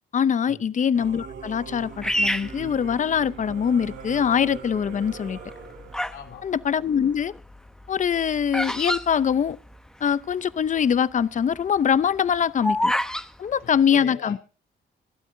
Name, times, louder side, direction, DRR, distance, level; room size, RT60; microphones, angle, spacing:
voice 1, 0.1-5.4 6.4-7.3 7.9-9.6 10.0-12.9 13.4-14.4, left 7 dB, 40° left, 0.6 m, -23 dB
Singing / Musical instrument, 0.9-6.0, right 5 dB, 80° right, 4.8 m, -40 dB
Bird vocalization bird call bird song, 2.0-3.5 4.2-4.6 5.3-6.3 6.6-10.0 10.3-10.4 10.6-10.9 11.4-13.3, equal, 5° left, 0.8 m, -27 dB
voice 2, 6.1-6.5 13.4-14.4, left 8 dB, 80° left, 3.1 m, -41 dB
23.5 x 12.5 x 2.7 m
cardioid pair, 90°, 20 cm